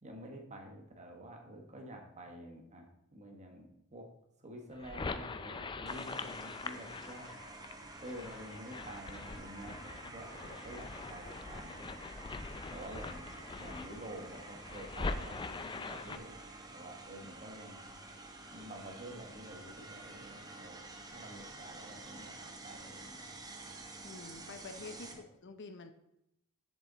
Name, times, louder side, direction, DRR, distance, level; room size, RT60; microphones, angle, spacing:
voice 1, 0.0-4.1 4.4-7.3 8.0-12.1 12.7-13.3 13.5-16.4 16.7-17.9 18.5-20.8 21.1-23.2 25.1-25.2, right 1 dB, 35° right, 2 dB, 1.4 m, -49 dB
sound 1, 4.7-16.2, left 3 dB, 20° left, 0.4 m, -43 dB
sound 2, 5.9-25.1, right 2 dB, 20° right, 0.9 m, -50 dB
voice 2, 24.0-25.9, left 3 dB, 55° left, 8 dB, 0.7 m, -48 dB
7.3 x 6.8 x 4.0 m, 0.81 s
head